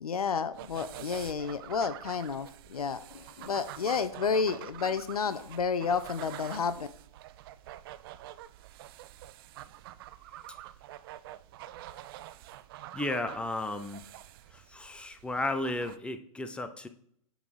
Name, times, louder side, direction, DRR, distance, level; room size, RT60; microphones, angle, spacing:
voice 1, 0.0-6.9, left 5 dB, 85° left, 12 dB, 0.5 m, -31 dB
sound 1, 0.5-16.0, right 13 dB, 40° right, 0.4 m, -47 dB
voice 2, 12.9-14.1 14.5-16.9, left 2 dB, 5° left, 9 dB, 0.6 m, -34 dB
9.0 x 3.9 x 4.8 m, 0.66 s
hypercardioid pair, 120°, 19 cm